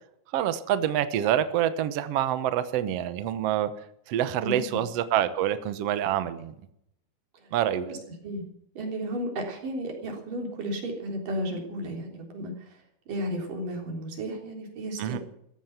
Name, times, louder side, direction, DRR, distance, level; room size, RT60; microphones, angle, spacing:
voice 1, 0.3-3.7 4.1-6.5 7.5-7.9 15.0-15.2, right 11 dB, 80° right, 11 dB, 1.4 m, -26 dB
voice 2, 4.4-4.8 7.4-7.5 7.9-8.0 8.2-8.4 8.8-12.8 13.1-15.2, right 1 dB, 60° right, 2 dB, 5.1 m, -33 dB
15.0 x 15.0 x 5.9 m, 0.73 s
omnidirectional pair, 4.4 m